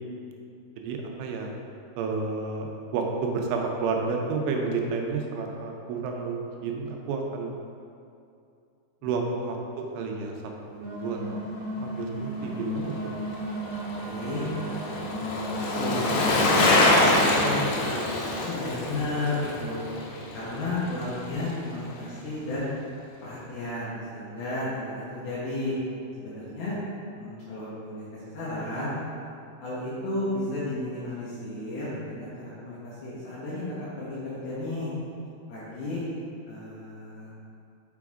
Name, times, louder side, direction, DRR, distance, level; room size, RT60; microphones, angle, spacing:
voice 1, 0.8-1.5 2.0-7.5 9.0-9.6 9.9-10.3 10.7-11.5 11.8-13.1, right 4 dB, 85° right, 1 dB, 3.1 m, -30 dB
sound 1, 10.8-17.4, right 2 dB, 60° right, 2.6 m, -35 dB
Bicycle, 12.8-21.2 21.5-21.6, left 2 dB, 85° left, 3.6 m, -26 dB
voice 2, 14.0-19.8 20.3-22.7 23.2-25.7 26.2-26.8 27.2-28.9 29.6-34.9 35.5-36.0 36.5-37.3, left 2 dB, 70° left, -9 dB, 2.5 m, -33 dB
6.9 x 6.0 x 3.6 m, 2.5 s
omnidirectional pair, 5.7 m